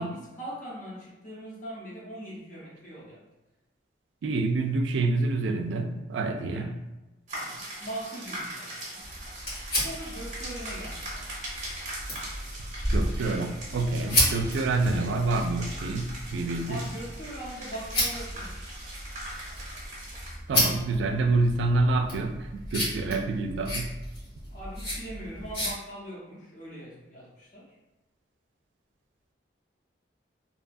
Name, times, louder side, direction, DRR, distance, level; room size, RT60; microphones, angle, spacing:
voice 1, 0.0-3.2 6.5-6.7 7.3-9.0 9.7-11.3 14.3-14.5 16.7-18.7 24.5-27.8, right 1 dB, 40° left, -6 dB, 0.7 m, -41 dB
voice 2, 4.2-6.8 12.9-16.8 20.5-23.9, right 3 dB, 75° right, 5 dB, 0.3 m, -27 dB
sound 1, 7.3-20.4, right 1 dB, 40° right, 0.7 m, -41 dB
sound 2, 9.0-25.7, equal, 60° left, 1.4 m, -33 dB
2.7 x 2.3 x 2.5 m, 1.0 s
head